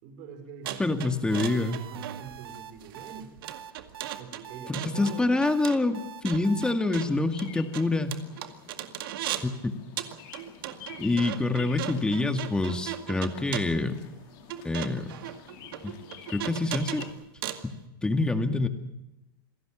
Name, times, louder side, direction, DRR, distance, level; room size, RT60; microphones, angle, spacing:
voice 1, 0.0-1.0 1.3-3.3 4.1-5.4, right 6 dB, 50° right, 6 dB, 4.9 m, -44 dB
sound 1, 0.6-9.6 10.0-17.7, right 12 dB, 70° right, 2.1 m, -38 dB
voice 2, 0.8-1.8 4.7-8.2 9.4-9.5 11.0-14.0 14.6-15.1 15.8-15.9 16.3-17.0 18.0-18.7, left 2 dB, 5° left, 7 dB, 2.1 m, -26 dB
sound 2, 1.3-6.7, right 9 dB, 90° right, 1.2 m, -43 dB
Bird vocalization bird call bird song, 7.0-17.1, left 11 dB, 50° left, 2.7 m, -49 dB
27.5 x 17.5 x 7.3 m, 0.92 s
supercardioid pair, 135°, 12 cm